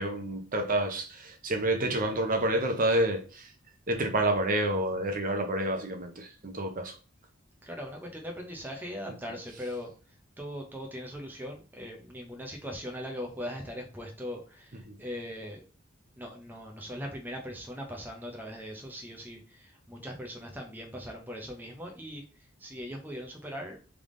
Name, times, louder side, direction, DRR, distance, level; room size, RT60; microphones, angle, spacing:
voice 1, 0.0-3.5 3.9-7.0 14.9-15.0, right 1 dB, 40° right, 0.8 m, -29 dB
voice 2, 7.6-9.9 10.4-15.6 16.2-22.2 22.6-23.8, equal, 10° right, 0.7 m, -40 dB
3.5 x 3.4 x 3.8 m
head